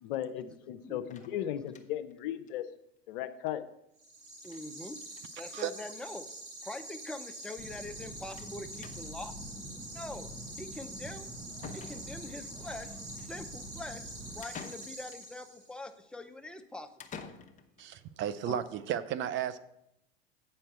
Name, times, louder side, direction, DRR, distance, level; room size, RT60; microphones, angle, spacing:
voice 1, 0.0-2.6 3.1-3.6 18.5-18.6, left 11 dB, 65° left, 11 dB, 0.7 m, -36 dB
sound 1, 1.1-2.1 2.5-2.6 2.9-3.0 3.2-3.3 4.4-4.7 4.9-5.3 6.2-6.3 6.5-6.6 8.4-8.6 8.8-9.3 11.1-11.2 11.6-12.4 14.4-15.3 17.0-17.9, left 6 dB, 25° left, 0.9 m, -48 dB
sound 2, 4.0-15.8, right 2 dB, 70° right, 3.6 m, -46 dB
voice 2, 4.4-5.0 5.4-6.3 6.6-9.3 9.9-10.3 10.6-11.3 11.7-12.9 13.1-14.1 14.3-16.9, left 1 dB, 5° left, 8 dB, 0.6 m, -43 dB
sound 3, 7.6-14.4, right 1 dB, 15° right, 1.1 m, -47 dB
voice 3, 17.8-19.6, right 10 dB, 40° right, 14 dB, 0.6 m, -34 dB
8.6 x 4.5 x 6.7 m, 0.80 s
hypercardioid pair, 90°, 29 cm